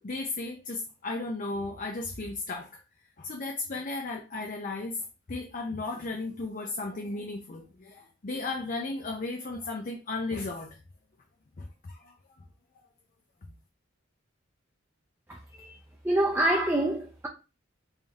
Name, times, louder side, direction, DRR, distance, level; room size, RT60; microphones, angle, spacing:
voice 1, 0.0-2.8 3.2-10.8 11.6-12.4 13.4-13.5, left 3 dB, 45° left, 0.5 m, -35 dB
voice 2, 16.0-17.3, right 1 dB, 10° right, 0.5 m, -25 dB
3.5 x 2.6 x 3.5 m
head